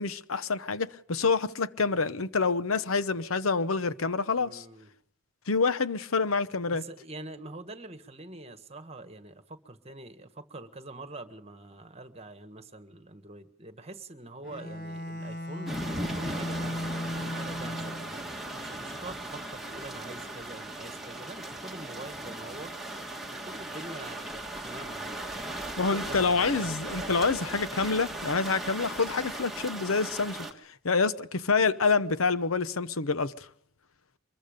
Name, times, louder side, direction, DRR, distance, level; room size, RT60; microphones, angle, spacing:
voice 1, 0.0-4.6 5.5-6.8 25.8-30.5 30.8-33.5, left 4 dB, 90° left, 0.9 m, -27 dB
voice 2, 4.4-4.9 6.7-15.8 16.1-22.7 23.3-25.6 25.9-27.6, right 2 dB, 30° right, 1.5 m, -45 dB
Bowed string instrument, 14.4-18.3, left 1 dB, 40° left, 1.0 m, -36 dB
sound 1, 15.7-30.5, right 1 dB, ahead, 1.8 m, -38 dB
24.5 x 21.5 x 5.3 m
head